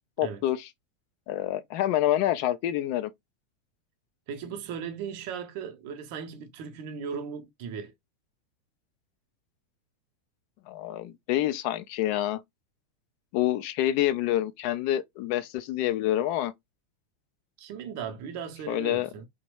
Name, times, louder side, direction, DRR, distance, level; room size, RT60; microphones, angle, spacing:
voice 1, 0.2-0.7 1.3-3.1 10.7-12.4 13.3-16.5 18.7-19.1, left 13 dB, 50° left, 0.4 m, -27 dB
voice 2, 4.3-7.9 17.6-19.3, right 7 dB, 50° right, 0.6 m, -37 dB
2.9 x 2.0 x 3.0 m
figure-of-eight pair, 90°, 0 cm